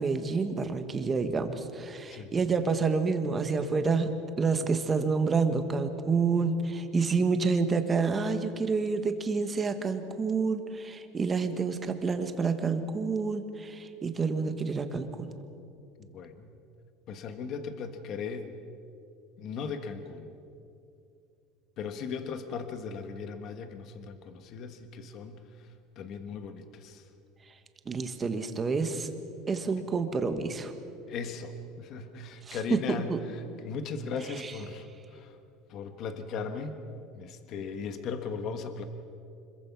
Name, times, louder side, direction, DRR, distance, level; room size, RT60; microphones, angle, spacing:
voice 1, 0.0-4.1 4.4-15.3 27.8-29.1 29.5-30.7 32.5-33.2 34.4-34.5, right 4 dB, 20° right, 8 dB, 1.4 m, -28 dB
voice 2, 16.0-16.5 17.1-18.5 19.4-20.3 21.8-25.4 26.0-27.0 31.1-34.9 35.1-35.4 35.7-36.7 37.1-38.9, left 5 dB, 40° left, 8 dB, 1.3 m, -37 dB
26.0 x 22.0 x 6.0 m, 2.6 s
cardioid pair, 165°, 0 cm